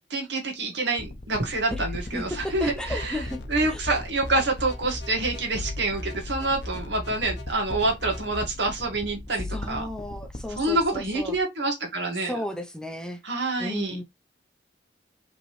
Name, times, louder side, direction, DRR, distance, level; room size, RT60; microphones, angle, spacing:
voice 1, 0.1-3.2 3.5-9.9 10.6-12.3 13.2-14.0, right 2 dB, 80° right, 1.8 m, -27 dB
sound 1, 1.0-11.4, left 2 dB, 40° left, 0.7 m, -39 dB
voice 2, 2.1-3.4 3.7-3.8 9.5-11.4 12.2-13.2 13.6-14.0, left 1 dB, 5° left, 0.6 m, -34 dB
sound 2, 2.4-8.4, left 1 dB, 85° left, 0.8 m, -38 dB
5.1 x 3.0 x 3.2 m
head